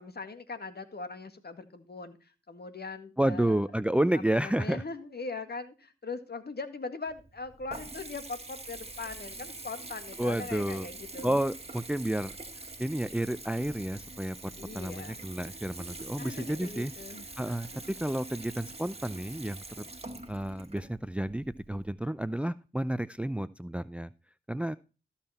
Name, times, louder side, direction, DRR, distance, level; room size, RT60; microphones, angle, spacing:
voice 1, 0.0-3.6 4.1-11.4 14.6-15.2 16.2-17.8, left 4 dB, 50° left, 9 dB, 1.9 m, -41 dB
voice 2, 3.2-4.8 10.2-10.9 11.2-12.3 12.8-16.9 17.4-19.9 20.3-24.1 24.5-24.8, right 1 dB, 5° right, 16 dB, 0.5 m, -31 dB
Water tap faucet / Bathtub (filling or washing) / Trickle dribble, 7.1-21.9, right 2 dB, 30° right, 2.1 m, -45 dB
14.0 x 5.8 x 4.3 m, 0.32 s
supercardioid pair, 40°, 21 cm